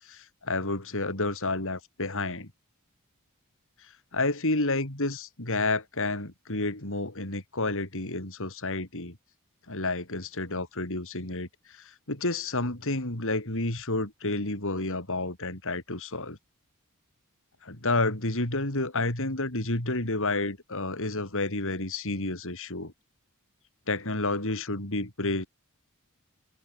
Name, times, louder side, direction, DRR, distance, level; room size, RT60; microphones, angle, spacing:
voice 1, 0.0-2.5 4.1-9.2 9.7-16.4 17.6-22.9 23.9-25.5, left 2 dB, 65° left, 5.1 m, -30 dB
open air
head